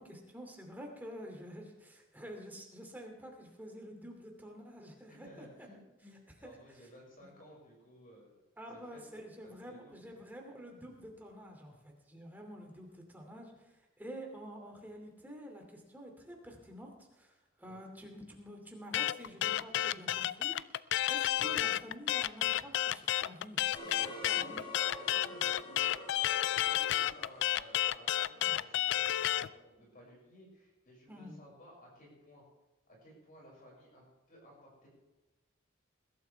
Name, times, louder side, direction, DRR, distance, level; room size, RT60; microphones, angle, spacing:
voice 1, 0.0-5.5 6.4-6.5 8.6-23.8 24.3-24.6 28.4-28.6 29.8-29.9 31.1-31.4, equal, 10° right, 1 dB, 2.6 m, -49 dB
voice 2, 5.1-8.4 8.9-9.0 9.4-10.0 12.7-12.8 17.7-17.8 23.9-24.6 25.0-32.4 32.9-34.9, equal, 45° left, -3 dB, 6.2 m, -56 dB
sound 1, 18.9-29.5, left 13 dB, 60° left, 0.4 m, -31 dB
sound 2, 23.7-28.7, left 1 dB, 30° left, 4.6 m, -48 dB
21.0 x 12.0 x 3.4 m, 1.1 s
head